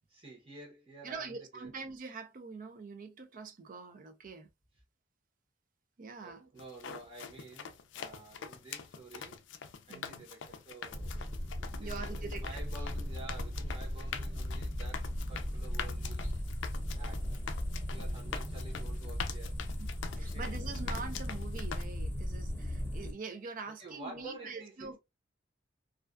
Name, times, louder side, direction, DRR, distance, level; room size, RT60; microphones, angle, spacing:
voice 1, 0.1-1.7 6.2-9.4 9.9-11.2 11.6-16.4 17.0-17.4 17.9-19.6 20.2-20.6 23.8-25.0, right 3 dB, 30° right, 0.9 m, -50 dB
voice 2, 1.0-4.5 6.0-6.5 9.9-10.2 11.8-12.6 18.0-18.2 19.8-19.9 20.2-25.0, right 4 dB, 45° right, 0.5 m, -44 dB
sound 1, 6.6-21.8, left 7 dB, 70° left, 0.4 m, -44 dB
sound 2, 10.9-23.1, equal, 10° left, 0.8 m, -37 dB
2.4 x 2.2 x 2.3 m
head